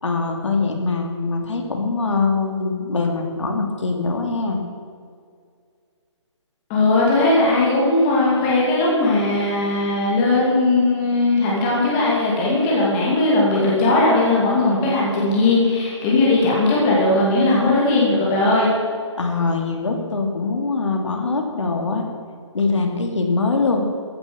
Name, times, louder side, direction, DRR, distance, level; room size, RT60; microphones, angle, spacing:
voice 1, 0.0-4.6 19.2-22.0 22.5-23.9, left 3 dB, 70° left, 2 dB, 2.9 m, -23 dB
voice 2, 6.7-18.7, left 2 dB, 15° left, -5 dB, 2.7 m, -18 dB
15.0 x 10.5 x 7.1 m, 2.1 s
hypercardioid pair, 175°, 16 cm